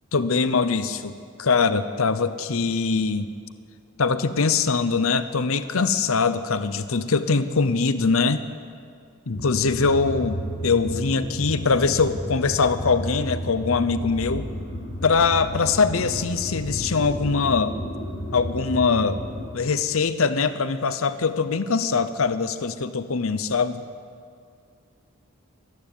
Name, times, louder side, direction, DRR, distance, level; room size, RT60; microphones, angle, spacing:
voice 1, 0.1-1.1 1.4-3.3 4.0-8.4 9.3-14.5 15.0-17.8 18.3-19.2 19.5-23.8, left 4 dB, 70° left, 12 dB, 0.8 m, -22 dB
sound 1, 9.3-19.4, equal, 55° left, 4.5 m, -32 dB
22.5 x 14.0 x 9.2 m, 2.3 s
head